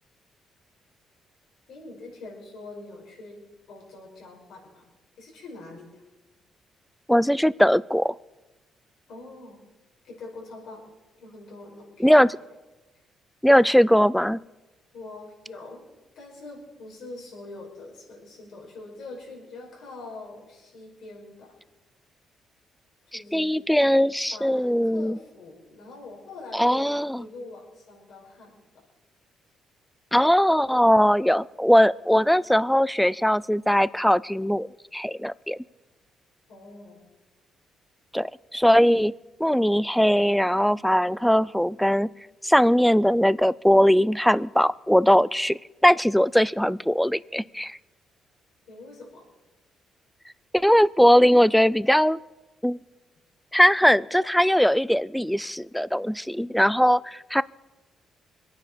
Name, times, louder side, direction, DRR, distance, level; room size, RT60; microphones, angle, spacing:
voice 1, 1.7-3.4 3.7-4.9 5.2-5.9 9.1-9.6 10.0-10.8 11.2-12.2 14.9-15.9 16.2-21.5 23.1-24.0 24.3-28.6 36.5-37.0 48.7-49.3, left 2 dB, 75° left, -1 dB, 5.3 m, -43 dB
voice 2, 7.1-8.1 12.0-12.3 13.4-14.4 23.1-25.2 26.5-27.2 30.1-34.7 34.9-35.6 38.1-39.1 39.4-42.1 42.4-47.8 50.5-52.2 52.6-52.8 53.5-57.4, equal, ahead, 20 dB, 0.4 m, -20 dB
24.0 x 9.3 x 5.1 m, 1.1 s
cardioid pair, 90°, 0 cm